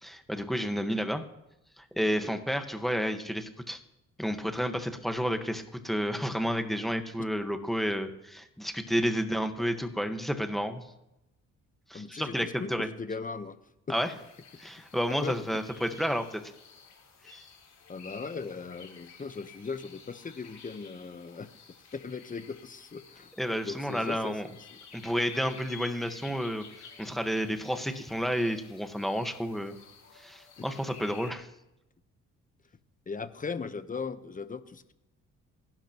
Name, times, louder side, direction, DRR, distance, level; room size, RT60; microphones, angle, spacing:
voice 1, 0.0-1.2 1.8-3.8 4.2-10.8 11.9-12.9 13.9-14.1 14.6-16.4 17.2-17.4 23.4-24.5 24.9-26.6 27.0-29.7 30.1-31.5, equal, ahead, 6 dB, 1.4 m, -31 dB
voice 2, 11.9-13.6 15.2-15.6 17.9-21.5 21.9-23.3 23.6-24.4 24.7-24.8 30.6-30.7 33.1-34.9, left 5 dB, 25° left, 11 dB, 1.0 m, -38 dB
sound 1, 13.9-31.3, left 6 dB, 60° left, 3.6 m, -52 dB
27.5 x 12.0 x 3.0 m, 0.91 s
cardioid pair, 90°, 30 cm